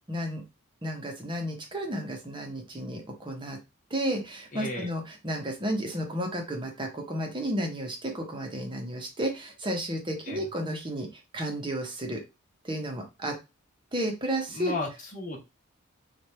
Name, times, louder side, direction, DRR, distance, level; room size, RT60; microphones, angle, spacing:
voice 1, 0.1-0.4 0.8-3.6 3.9-12.2 12.6-13.4 13.9-14.7, right 1 dB, 25° right, 3 dB, 0.9 m, -32 dB
voice 2, 4.5-4.9 10.3-10.4 14.5-15.4, left 2 dB, 35° left, 0 dB, 1.2 m, -34 dB
3.2 x 2.5 x 4.3 m, 0.26 s
head